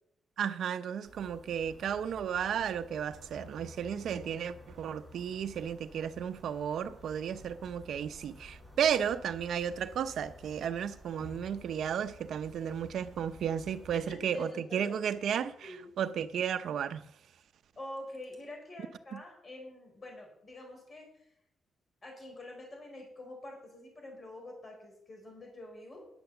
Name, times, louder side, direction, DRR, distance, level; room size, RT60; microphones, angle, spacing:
voice 1, 0.4-17.0 19.1-19.2, right 8 dB, 75° right, 0.7 m, -33 dB
sound 1, 1.0-14.2, left 1 dB, 10° left, 4.1 m, -53 dB
voice 2, 13.9-14.9 15.6-15.9 17.8-21.3 22.0-26.1, left 1 dB, 35° left, 4.4 m, -46 dB
11.0 x 7.0 x 6.8 m
cardioid pair, 120°, 0 cm